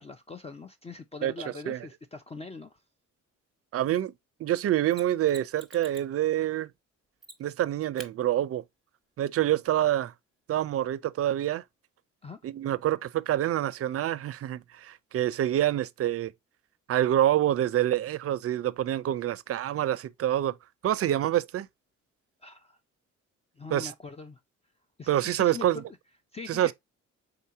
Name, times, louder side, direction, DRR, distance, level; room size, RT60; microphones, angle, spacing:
voice 1, 0.0-2.8 12.2-12.4 22.4-22.8 23.6-24.4 25.0-25.8 26.3-26.7, left 4 dB, 20° left, 0.4 m, -42 dB
voice 2, 3.7-4.1 4.4-6.7 7.4-8.6 9.2-10.1 10.5-11.6 12.4-16.3 16.9-20.6 20.8-21.7 23.7-23.9 25.1-25.8 26.5-26.7, right 12 dB, 50° right, 0.4 m, -26 dB
Mechanisms, 4.9-6.2 7.2-7.6 8.0-8.1 10.9-11.0, right 1 dB, ahead, 1.0 m, -48 dB
3.8 x 2.7 x 4.7 m
cardioid pair, 90°, 30 cm